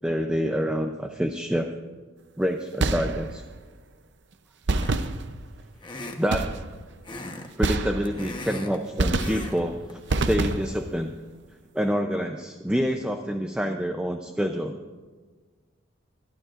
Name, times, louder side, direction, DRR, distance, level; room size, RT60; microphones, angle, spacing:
voice 1, 0.0-1.8 2.4-3.4 5.8-6.5 7.6-10.0 10.3-11.1 11.7-14.8, equal, 5° right, 4 dB, 0.5 m, -27 dB
sound 1, 2.8-3.5 4.7-5.6 6.3-6.9 7.6-8.4 9.0-9.7 10.1-10.9, right 2 dB, 55° right, 0.6 m, -27 dB
sound 2, 4.8-5.2 5.8-6.5 7.0-7.5 7.8-8.8 9.2-9.6 9.9-10.1, left 2 dB, 20° left, 1.0 m, -38 dB
24.5 x 12.0 x 2.5 m, 1.4 s
head